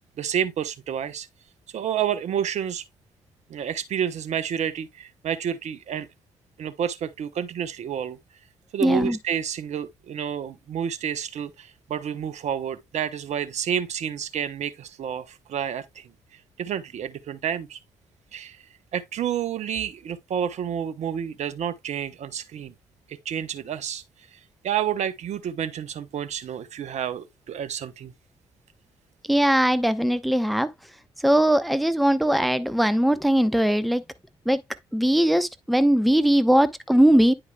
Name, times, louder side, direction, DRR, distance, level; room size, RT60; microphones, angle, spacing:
voice 1, 0.2-1.3 1.7-2.8 3.5-6.1 6.6-8.2 8.7-17.8 18.3-18.6 18.9-22.7 23.1-24.0 24.3-28.1, right 9 dB, 60° right, 0.9 m, -30 dB
voice 2, 8.8-9.2 29.3-30.7 31.2-34.0 34.5-34.6 34.9-37.3, right 1 dB, ahead, 0.8 m, -20 dB
9.8 x 4.8 x 2.3 m
hypercardioid pair, 45°, 13 cm